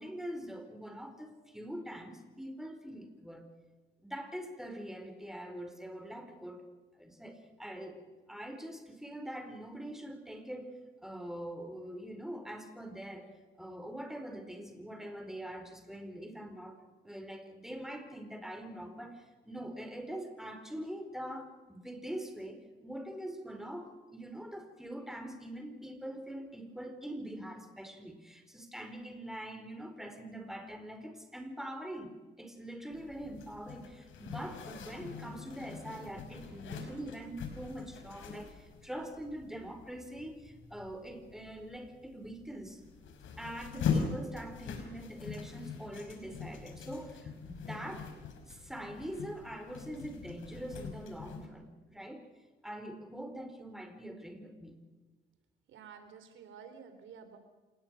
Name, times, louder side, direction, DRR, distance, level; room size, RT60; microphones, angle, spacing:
voice 1, 0.0-3.5 4.0-6.6 7.0-10.7 11.0-42.8 43.4-48.1 48.4-52.3 52.6-54.8, right 1 dB, ahead, 6 dB, 4.5 m, -44 dB
Zipper (clothing), 32.9-51.5, left 6 dB, 75° left, 5.0 m, -42 dB
voice 2, 55.7-57.4, right 7 dB, 75° right, 8 dB, 3.7 m, -51 dB
27.5 x 20.0 x 6.5 m, 1.3 s
cardioid pair, 90°, 20 cm